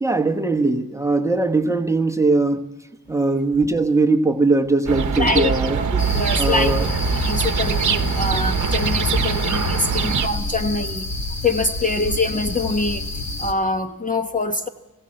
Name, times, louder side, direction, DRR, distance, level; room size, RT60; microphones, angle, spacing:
voice 1, 0.0-2.6 3.1-5.8 6.4-6.9 10.0-10.2, right 3 dB, 10° right, 1.1 m, -20 dB
sound 1, 4.9-10.3, right 6 dB, 55° right, 1.0 m, -23 dB
voice 2, 5.2-5.5 5.9-6.7 7.1-11.1 11.4-13.0 13.4-14.7, left 3 dB, 20° left, 1.0 m, -24 dB
sound 2, 6.0-13.5, left 2 dB, 50° left, 1.9 m, -28 dB
21.0 x 16.5 x 7.6 m
wide cardioid pair, 145°, 35 cm